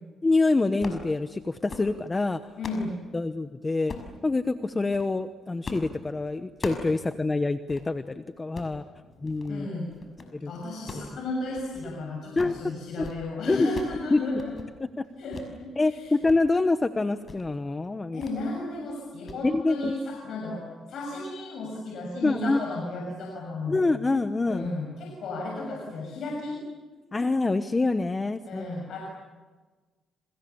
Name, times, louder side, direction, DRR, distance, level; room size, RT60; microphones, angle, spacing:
voice 1, 0.2-2.4 3.1-3.9 4.2-8.8 9.2-9.7 10.3-10.5 10.9-11.1 12.4-12.5 13.0-13.1 13.5-13.7 14.1-14.2 14.8-15.1 15.8-18.2 19.4-19.9 22.2-22.6 23.7-24.7 27.1-28.7, left 3 dB, 25° left, 10 dB, 1.0 m, -26 dB
sound 1, 0.7-1.1 1.5-1.9 2.3-2.9 3.9-4.1 4.8-5.1 5.6-5.9 6.2-7.0 7.3-7.4 7.7-7.9 8.4-8.7 9.3-9.6 9.9-10.3 10.7-11.9 12.2-12.6 12.9-13.2 13.5-14.0 14.3-14.7 15.3-15.5 15.9-16.4 16.7-16.8 17.2-17.5 18.2-18.4 18.7-18.9 19.3-19.4, left 3 dB, 40° left, 5.8 m, -40 dB
voice 2, 2.6-3.0 9.5-9.9 10.5-14.5 15.2-16.1 18.1-23.8 24.5-26.6 28.5-29.0, left 2 dB, 65° left, -1 dB, 7.0 m, -34 dB
29.0 x 27.0 x 7.2 m, 1.3 s
cardioid pair, 90°, 0 cm